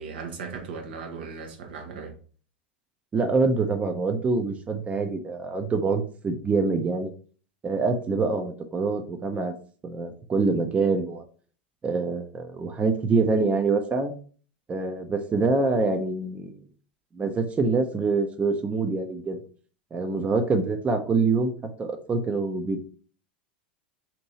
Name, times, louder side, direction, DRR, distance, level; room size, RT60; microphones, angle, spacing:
voice 1, 0.0-2.2, right 5 dB, 70° right, 0.9 m, -37 dB
voice 2, 3.1-7.1 7.6-9.5 9.8-11.2 11.8-14.1 14.7-16.5 17.1-19.4 19.9-22.8, right 3 dB, 25° right, 0.6 m, -25 dB
2.9 x 2.6 x 4.2 m
hypercardioid pair, 90°, 6 cm